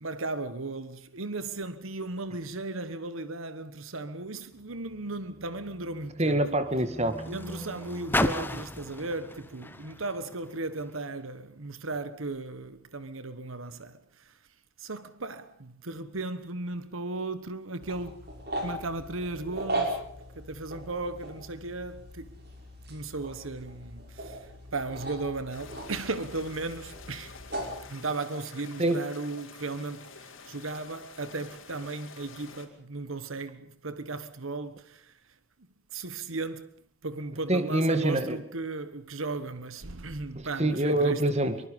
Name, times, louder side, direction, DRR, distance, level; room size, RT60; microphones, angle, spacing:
voice 1, 0.0-6.4 7.3-14.4 14.8-18.3 18.6-20.0 20.3-22.4 22.9-27.4 27.9-35.2 35.9-36.7 37.0-41.3, right 3 dB, 80° right, 1.3 m, -36 dB
Car, 4.5-11.1 11.9-12.0, left 1 dB, 10° left, 1.1 m, -36 dB
voice 2, 6.2-7.2 28.8-29.0 37.5-38.4 40.4-41.6, right 1 dB, 30° right, 2.0 m, -26 dB
sound 1, 17.8-27.8, right 1 dB, 50° right, 5.8 m, -38 dB
sound 2, 25.5-32.7, left 5 dB, 70° left, 4.3 m, -49 dB
25.5 x 23.5 x 5.4 m
head